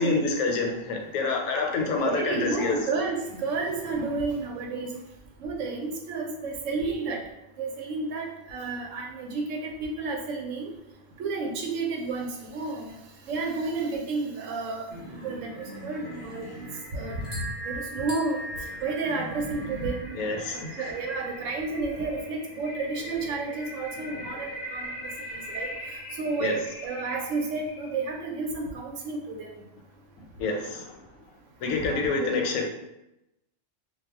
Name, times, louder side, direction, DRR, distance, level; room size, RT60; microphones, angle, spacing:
voice 1, 0.0-2.8 20.1-20.9 26.4-26.5 30.4-31.0 31.6-32.7, left 3 dB, 85° left, 2 dB, 1.0 m, -27 dB
voice 2, 2.0-4.9 5.4-7.2 7.6-10.7 11.2-12.9 13.3-14.9 15.2-16.5 16.9-18.4 18.8-20.2 20.7-24.9 25.3-25.7 26.2-29.5 31.8-31.9 32.2-32.3, right 3 dB, 75° right, 1 dB, 0.9 m, -31 dB
sound 1, 14.8-28.2, left 1 dB, 60° left, 0.7 m, -42 dB
sound 2, 14.9-17.5 17.9-20.1 20.6-22.6, right 1 dB, 50° right, 0.8 m, -44 dB
sound 3, 17.0-22.1, right 2 dB, 25° left, 0.6 m, -41 dB
2.3 x 2.1 x 3.3 m, 0.89 s
omnidirectional pair, 1.4 m